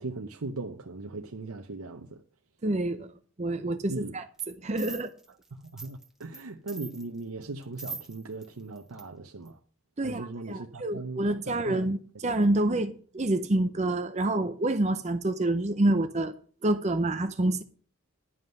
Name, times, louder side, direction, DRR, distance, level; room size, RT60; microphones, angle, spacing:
voice 1, 0.0-2.2 3.9-4.2 5.5-9.6 10.0-11.9, right 3 dB, 85° right, 0.8 m, -39 dB
voice 2, 2.6-3.1 3.4-5.1 10.0-16.3 16.6-17.6, right 2 dB, 30° right, 0.6 m, -27 dB
sound 1, 4.4-4.5 4.8-6.4 6.7-8.5 8.8-9.0 9.5-9.6, right 4 dB, ahead, 1.2 m, -42 dB
11.0 x 5.5 x 7.7 m
head